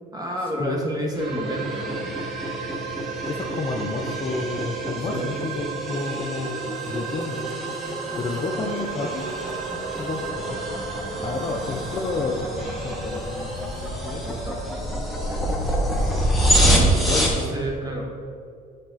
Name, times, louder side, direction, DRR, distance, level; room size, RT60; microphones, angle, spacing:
voice 1, 0.1-2.1 5.0-5.3 14.2-14.9 15.2-15.5 16.5-18.0, equal, 20° right, -1 dB, 1.3 m, -31 dB
sound 1, 1.2-17.5, equal, ahead, 1.2 m, -27 dB
sound 2, 1.2-14.8, right 9 dB, 85° right, 0.5 m, -36 dB
voice 2, 3.3-7.4 8.2-9.3 10.0-10.6 11.2-12.5 12.8-13.3 14.0-14.4 17.0-17.3, left 3 dB, 35° left, 2 dB, 0.6 m, -30 dB
sound 3, 5.8-15.6, equal, 60° right, 1.6 m, -39 dB
7.6 x 4.1 x 3.9 m, 2.3 s
cardioid pair, 110°, 17 cm